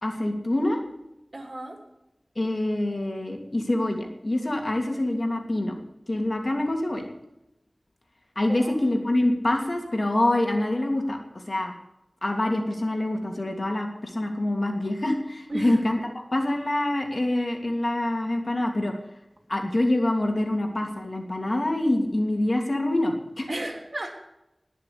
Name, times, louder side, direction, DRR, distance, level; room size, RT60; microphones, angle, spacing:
voice 1, 0.0-0.8 2.4-5.8 6.1-7.1 8.3-11.7 12.2-18.9 19.5-23.5, left 1 dB, 55° left, 3 dB, 2.9 m, -26 dB
voice 2, 1.3-1.8 8.5-8.8 15.5-15.8 23.5-24.3, right 1 dB, 60° right, 2 dB, 3.5 m, -33 dB
20.0 x 6.7 x 8.6 m, 0.91 s
wide cardioid pair, 45°, 0 cm